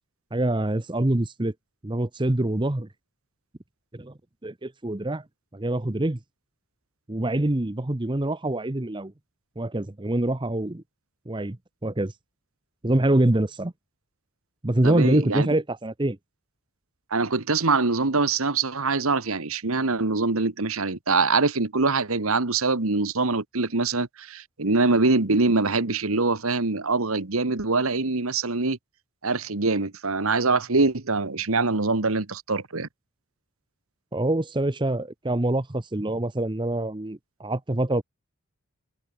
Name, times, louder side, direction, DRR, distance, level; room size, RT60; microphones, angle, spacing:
voice 1, 0.3-1.5 1.8-2.9 3.9-4.1 4.4-5.2 5.5-6.2 7.1-9.1 9.6-10.8 11.3-11.6 11.8-12.1 12.8-13.7 14.6-16.2 34.1-38.0, right 1 dB, 20° right, 0.8 m, -25 dB
voice 2, 14.8-15.5 17.1-28.8 29.2-32.9, right 3 dB, 70° right, 1.5 m, -24 dB
head